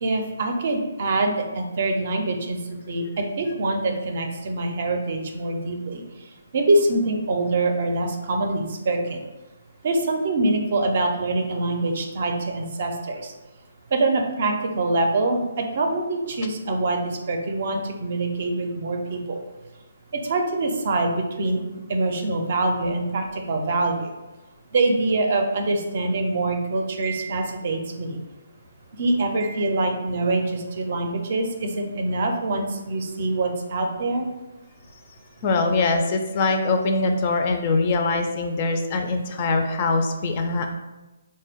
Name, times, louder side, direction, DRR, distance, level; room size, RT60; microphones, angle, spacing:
voice 1, 0.0-2.6 2.9-6.0 6.5-9.2 9.8-13.2 13.9-17.0 17.3-19.4 20.2-21.6 21.9-24.1 24.7-28.2 29.0-34.2, right 2 dB, 50° right, 4 dB, 0.5 m, -24 dB
voice 2, 35.4-40.7, left 3 dB, 35° left, 5 dB, 0.3 m, -23 dB
3.7 x 2.1 x 3.4 m, 1.1 s
hypercardioid pair, 160°, 0 cm